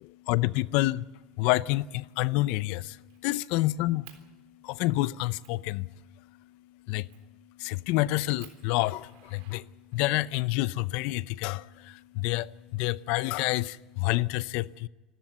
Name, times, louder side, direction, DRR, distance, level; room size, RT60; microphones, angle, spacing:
voice 1, 0.2-14.9, left 18 dB, 70° left, 0.6 m, -29 dB
Fire, 1.9-2.2 2.5-3.5 4.0-4.2 4.8-4.9 5.4-5.6 7.1-7.4 7.9-8.0 8.4-10.2 11.2-12.2, right 12 dB, 80° right, 3.7 m, -56 dB
25.5 x 13.5 x 8.1 m
cardioid pair, 140°, 2 cm